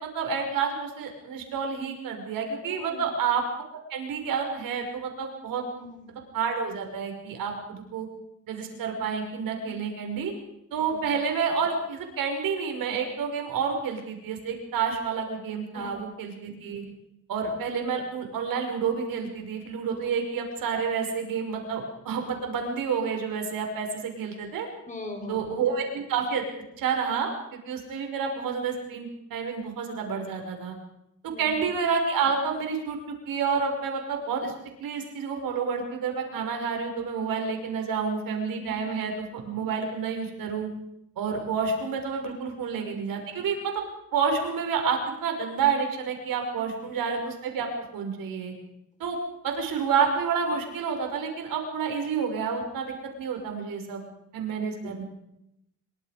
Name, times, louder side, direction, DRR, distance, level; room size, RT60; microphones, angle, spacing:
voice 1, 0.0-3.4 3.9-5.6 6.3-8.1 8.5-10.3 10.7-16.8 17.3-24.7 25.3-26.4 26.8-30.8 31.4-33.0 33.3-34.5 34.8-40.7 41.2-43.8 44.1-48.5 49.0-49.2 49.4-54.0 54.3-55.0, right 6 dB, 80° right, 3 dB, 5.7 m, -29 dB
voice 2, 2.7-3.1 5.7-6.1 9.6-9.8 10.8-11.1 15.7-16.0 24.9-25.5 31.3-31.6 38.7-39.0 42.4-42.7 46.8-47.0 54.8-54.9, left 2 dB, 20° left, 4 dB, 4.9 m, -41 dB
26.5 x 23.5 x 5.1 m, 0.83 s
cardioid pair, 160°, 34 cm